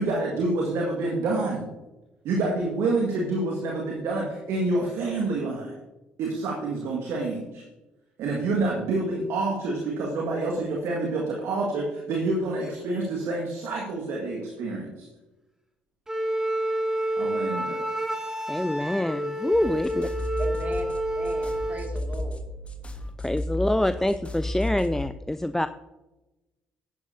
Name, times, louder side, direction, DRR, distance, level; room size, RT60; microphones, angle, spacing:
voice 1, 0.0-1.7 2.2-5.7 6.2-7.6 8.2-15.1 17.2-17.8, right 2 dB, 60° right, -2 dB, 1.8 m, -27 dB
Wind instrument woodwind instrument, 16.1-21.9, right 1 dB, 10° right, 2.1 m, -29 dB
voice 2, 18.5-20.1 23.2-25.7, left 1 dB, 10° left, 12 dB, 0.4 m, -26 dB
sound 1, 19.5-25.1, left 1 dB, 25° left, 1.4 m, -33 dB
voice 3, 20.4-20.9 21.2-22.4, right 2 dB, 30° right, 3 dB, 2.2 m, -38 dB
11.0 x 10.5 x 2.7 m, 1.0 s
hypercardioid pair, 50°, 5 cm